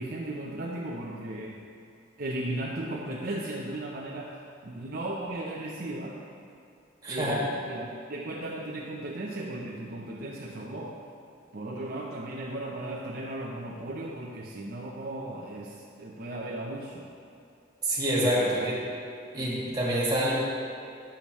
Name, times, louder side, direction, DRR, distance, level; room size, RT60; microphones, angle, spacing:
voice 1, 0.0-1.6 2.2-6.2 7.1-11.0 11.5-17.1 18.4-18.7, right 1 dB, 50° right, -4 dB, 0.6 m, -36 dB
voice 2, 7.0-7.4 17.8-18.7 19.3-20.4, right 1 dB, 20° right, -7 dB, 1.8 m, -26 dB
10.0 x 6.9 x 3.1 m, 2.5 s
head